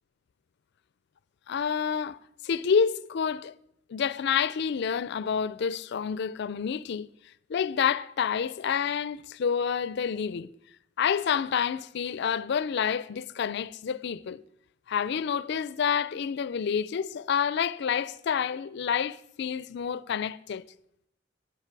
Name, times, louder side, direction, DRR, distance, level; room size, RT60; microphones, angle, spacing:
voice 1, 1.5-2.2 2.4-3.5 3.9-7.1 7.5-10.5 11.0-14.4 14.9-20.6, left 7 dB, 60° left, 0.4 m, -28 dB
12.5 x 10.5 x 4.6 m
head